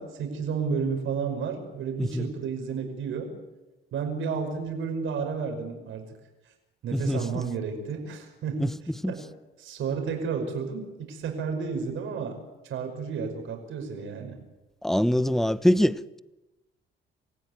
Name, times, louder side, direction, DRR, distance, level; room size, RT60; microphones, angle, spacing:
voice 1, 0.0-3.3 3.9-6.1 6.8-8.8 9.1-9.3 9.6-14.4, right 5 dB, 80° right, 5.5 m, -32 dB
voice 2, 6.9-7.2 8.6-8.7 9.0-9.1 14.8-16.2, equal, ahead, 0.9 m, -24 dB
27.5 x 16.0 x 9.6 m
cardioid pair, 90°, 20 cm